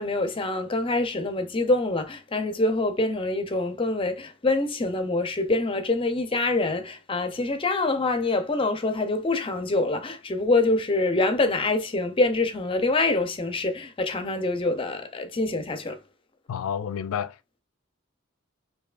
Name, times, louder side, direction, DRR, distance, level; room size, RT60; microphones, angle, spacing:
voice 1, 0.0-16.0, left 2 dB, 25° left, 0.5 m, -25 dB
voice 2, 16.5-17.6, left 8 dB, 85° left, 0.4 m, -31 dB
4.4 x 2.7 x 2.4 m
head